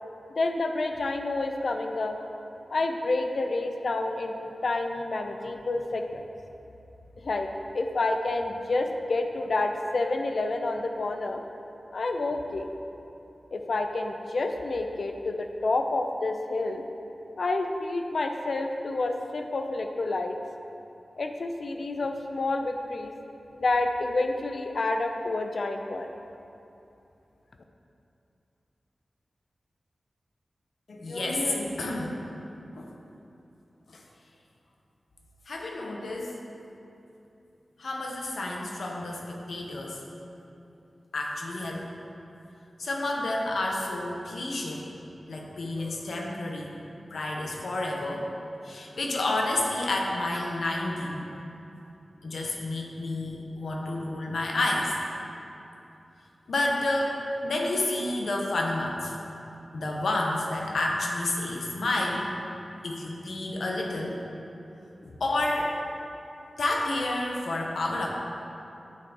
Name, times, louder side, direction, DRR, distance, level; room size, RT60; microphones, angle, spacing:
voice 1, 0.4-2.2 2.7-6.2 7.2-7.5 7.7-11.4 11.9-12.7 13.5-16.8 17.4-20.3 21.2-23.1 23.5-26.1, left 2 dB, 65° left, 5 dB, 0.4 m, -29 dB
voice 2, 30.9-32.2 32.8-32.9 35.5-36.3 37.8-40.0 41.1-41.8 42.8-44.8 45.3-46.7 47.1-48.3 48.6-51.3 52.2-54.9 56.5-59.1 59.7-62.3 62.8-64.2 65.0-65.8 66.6-68.1, left 2 dB, 85° left, -1 dB, 0.8 m, -30 dB
9.6 x 4.2 x 2.9 m, 2.8 s
wide cardioid pair, 105°, 0 cm